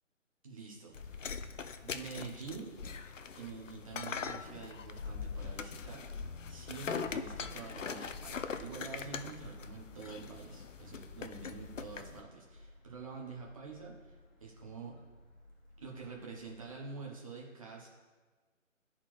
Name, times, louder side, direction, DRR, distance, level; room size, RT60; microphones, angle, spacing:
voice 1, 0.4-1.3 1.8-2.7 3.3-6.1 6.5-15.0 15.8-17.9, right 4 dB, 25° right, -2 dB, 1.0 m, -47 dB
sound 1, 0.9-12.2, left 6 dB, 70° left, 0.5 m, -42 dB
sound 2, 3.8-16.8, left 1 dB, 35° left, 1.0 m, -58 dB
12.0 x 4.2 x 3.2 m, 1.4 s
figure-of-eight pair, 155°, 39 cm